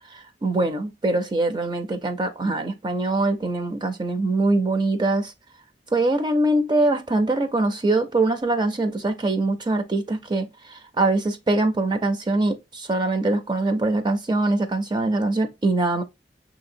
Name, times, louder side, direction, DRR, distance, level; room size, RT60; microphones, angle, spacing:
voice 1, 0.1-5.3 5.9-16.0, right 2 dB, 25° right, 0.6 m, -23 dB
6.2 x 2.8 x 2.6 m
head